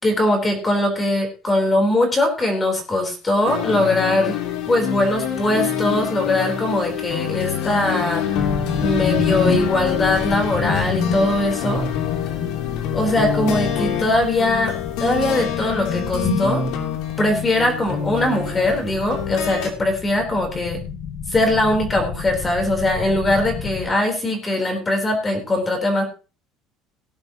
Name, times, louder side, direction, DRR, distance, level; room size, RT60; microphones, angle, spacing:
voice 1, 0.0-4.4 4.7-8.3 8.8-11.8 12.9-14.7 15.0-16.6 17.2-20.8 21.3-26.0, left 1 dB, 15° left, 3 dB, 3.7 m, -21 dB
sound 1, 3.5-19.7, left 8 dB, 70° left, 3.0 m, -26 dB
sound 2, 8.3-23.9, left 5 dB, 45° left, 2.2 m, -29 dB
18.5 x 10.5 x 3.0 m, 0.33 s
cardioid pair, 155°, 0 cm